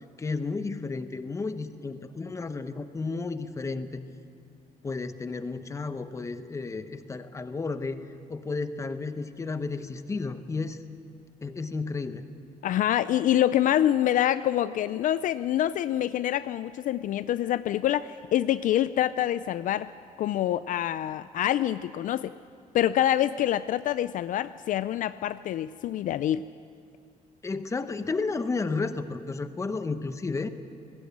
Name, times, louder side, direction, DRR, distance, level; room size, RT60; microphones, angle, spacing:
voice 1, 0.2-4.0 4.8-10.8 11.4-12.2 27.4-30.5, left 4 dB, 20° left, 10 dB, 0.9 m, -32 dB
voice 2, 12.6-19.9 20.2-22.3 22.7-26.4, left 12 dB, 60° left, 14 dB, 0.4 m, -26 dB
19.0 x 15.5 x 8.7 m, 2.3 s
cardioid pair, 140°, 15 cm